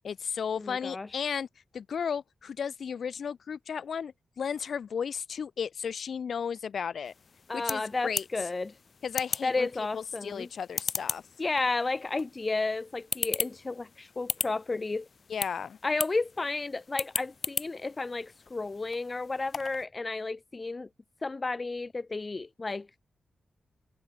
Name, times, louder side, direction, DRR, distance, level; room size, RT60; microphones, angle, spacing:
voice 1, 0.0-1.5 1.7-7.1 7.5-8.2 9.0-11.2 15.3-15.8, left 7 dB, 70° left, 2.5 m, -34 dB
voice 2, 0.6-1.1 7.5-8.7 9.4-10.5 11.4-15.1 15.8-20.9 21.2-22.9, left 3 dB, 30° left, 0.7 m, -32 dB
sound 1, 7.0-19.9, left 5 dB, 50° left, 6.4 m, -38 dB
wide cardioid pair, 105°, 0 cm